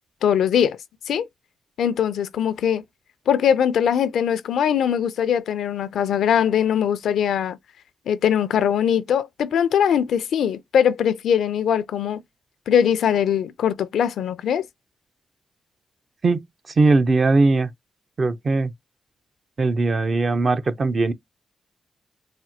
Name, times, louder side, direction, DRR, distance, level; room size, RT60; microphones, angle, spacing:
voice 1, 0.2-0.8 1.1-1.3 1.8-2.8 3.3-7.6 8.1-12.2 12.7-14.7, left 8 dB, 85° left, 0.4 m, -21 dB
voice 2, 16.8-17.7 18.2-18.7 19.6-21.1, right 3 dB, 50° right, 0.6 m, -19 dB
4.1 x 2.0 x 2.8 m
cardioid pair, 65°, 0 cm